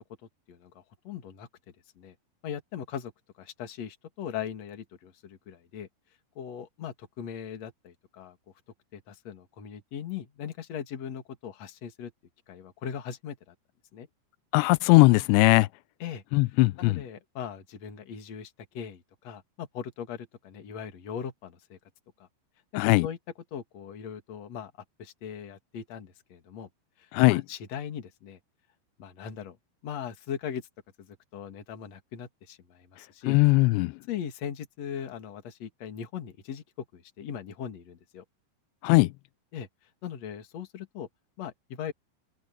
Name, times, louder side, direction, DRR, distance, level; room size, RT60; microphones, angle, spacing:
voice 1, 0.5-2.2 2.4-3.1 3.4-5.9 6.4-8.4 8.9-12.1 12.5-13.5 13.9-14.1 16.0-16.2 16.8-21.8 22.2-22.3 22.7-23.2 23.5-24.7 25.0-26.7 27.0-28.4 29.0-29.6 29.8-30.7 31.0-33.4 34.1-38.2 39.5-39.7 40.0-41.1 41.4-41.9, left 8 dB, 45° left, 2.7 m, -39 dB
voice 2, 14.5-15.7 16.3-17.0 22.8-23.1 27.1-27.4 33.3-33.9 38.8-39.1, left 23 dB, 85° left, 2.7 m, -19 dB
open air
omnidirectional pair, 5.2 m